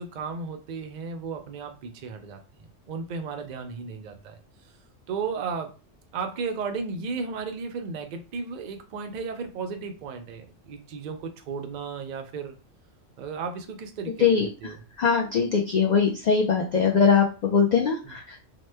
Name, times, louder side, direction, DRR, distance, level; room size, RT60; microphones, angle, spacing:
voice 1, 0.0-4.3 5.1-5.7 6.1-12.6 13.2-14.8 18.0-18.2, right 5 dB, 80° right, 5 dB, 0.4 m, -34 dB
voice 2, 15.0-18.4, left 6 dB, 80° left, 0 dB, 0.4 m, -21 dB
2.8 x 2.1 x 3.2 m, 0.33 s
omnidirectional pair, 1.3 m